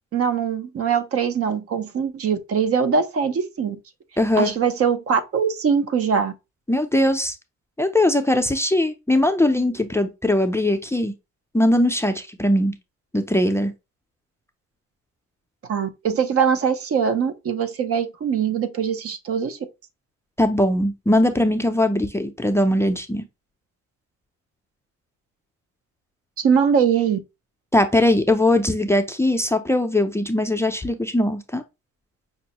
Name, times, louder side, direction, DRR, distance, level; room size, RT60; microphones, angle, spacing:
voice 1, 0.1-3.8 4.4-6.3 15.7-19.6 26.4-27.2, right 7 dB, 50° right, 0.6 m, -22 dB
voice 2, 4.2-4.5 6.7-7.4 7.8-11.1 11.5-12.7 13.1-13.7 20.4-23.2 27.7-31.6, left 1 dB, 10° left, 0.4 m, -20 dB
5.3 x 2.0 x 2.9 m
cardioid pair, 90°, 30 cm